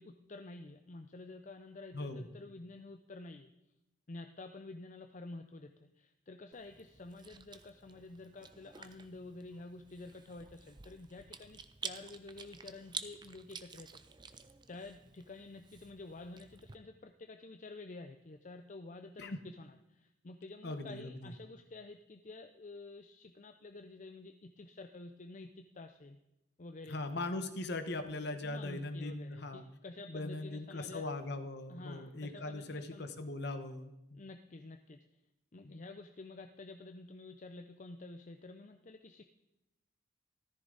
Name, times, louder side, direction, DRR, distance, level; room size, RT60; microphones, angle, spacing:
voice 1, 0.0-3.5 4.1-14.4 14.7-26.2 26.6-27.0 28.4-31.0 31.7-33.1 34.1-35.0 35.5-39.2, left 2 dB, 35° left, 6 dB, 0.5 m, -50 dB
voice 2, 1.9-2.3 19.2-19.4 20.6-21.3 26.9-29.6 30.1-34.2 35.6-35.8, left 2 dB, 55° left, 8 dB, 1.2 m, -40 dB
Chewing mastication, 6.5-16.7, right 6 dB, 20° right, 0.5 m, -50 dB
14.0 x 14.0 x 4.0 m, 0.91 s
head